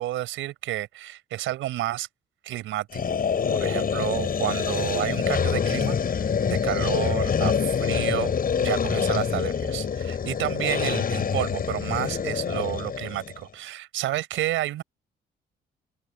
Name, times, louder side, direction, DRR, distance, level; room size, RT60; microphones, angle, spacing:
voice 1, 0.0-2.1 2.4-3.2 3.5-14.8, right 14 dB, 90° right, 5.0 m, -30 dB
sound 1, 2.9-13.4, left 7 dB, 45° left, 6.9 m, -26 dB
open air
cardioid pair, 90°, 20 cm